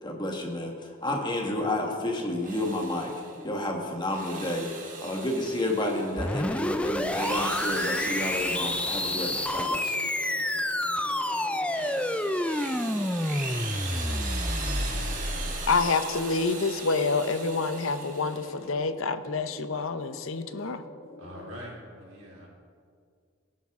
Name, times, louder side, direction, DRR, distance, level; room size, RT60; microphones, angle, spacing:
voice 1, 0.0-3.1 3.4-9.9, left 1 dB, 20° left, 1 dB, 1.5 m, -30 dB
sound 1, 1.8-21.5, left 1 dB, 50° left, 1.3 m, -46 dB
Drill, 2.3-3.4 4.0-6.3 6.9-10.6 11.1-18.6, right 4 dB, 40° right, 1.7 m, -40 dB
sound 2, 6.2-15.8, left 1 dB, 5° left, 0.4 m, -29 dB
voice 2, 15.7-20.8, left 4 dB, 75° left, 11 dB, 0.7 m, -27 dB
voice 3, 21.2-22.5, equal, 90° right, -4 dB, 3.7 m, -43 dB
17.5 x 10.5 x 3.6 m, 2.1 s
head